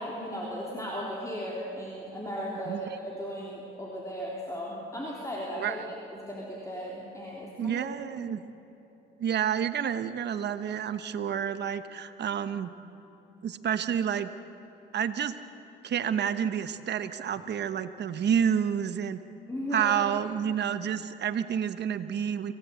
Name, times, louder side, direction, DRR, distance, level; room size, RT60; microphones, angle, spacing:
voice 1, 0.0-5.8 6.1-7.9 19.5-19.9, equal, 15° left, -4 dB, 3.6 m, -36 dB
voice 2, 2.6-3.0 5.6-5.8 7.6-8.4 9.2-12.7 13.4-14.3 14.9-15.3 15.8-19.2 19.7-22.5, right 8 dB, 60° right, 10 dB, 1.1 m, -29 dB
25.5 x 17.5 x 8.2 m, 2.9 s
cardioid pair, 90°, 20 cm